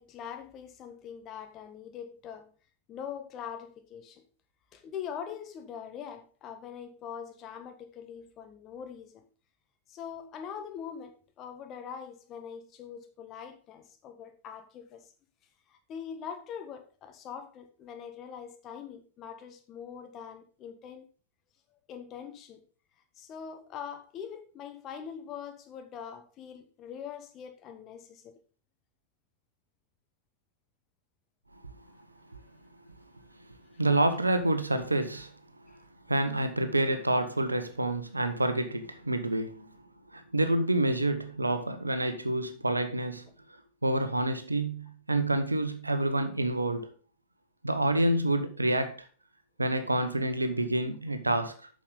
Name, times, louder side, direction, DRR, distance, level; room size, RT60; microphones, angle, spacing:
voice 1, 0.0-2.5 2.9-4.2 4.7-9.2 9.9-15.1 15.7-21.1 21.9-22.6 23.2-28.4, left 8 dB, 35° left, 1.5 m, -43 dB
voice 2, 33.8-35.3 35.7-35.8 36.1-39.7 40.1-43.3 43.8-46.9 47.6-49.0 49.6-51.5, right 1 dB, 80° right, 0.9 m, -28 dB
8.6 x 6.4 x 3.8 m
figure-of-eight pair, 90°, 0 cm